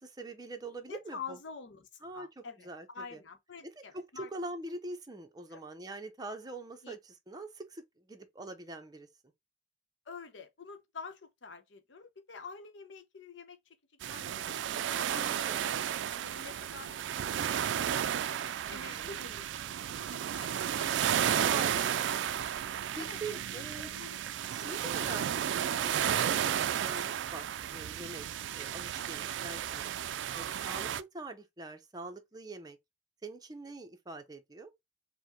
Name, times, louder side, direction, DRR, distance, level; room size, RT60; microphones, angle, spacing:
voice 1, 0.0-1.4 2.0-3.2 3.6-9.1 15.1-15.9 18.7-19.1 20.8-22.1 23.0-24.2 24.5-25.2 25.5-27.5 27.7-28.3 28.5-29.9 30.3-32.8 33.2-34.7, right 2 dB, 20° right, 0.6 m, -44 dB
voice 2, 0.9-2.7 2.9-4.3 5.5-5.6 6.8-6.9 10.1-13.8 14.0-18.3 18.7-19.4 19.9-21.5 23.0-24.3 24.6-24.8, left 5 dB, 90° left, 0.8 m, -48 dB
sound 1, 14.0-31.0, right 9 dB, 80° right, 0.3 m, -33 dB
4.6 x 2.1 x 3.7 m
head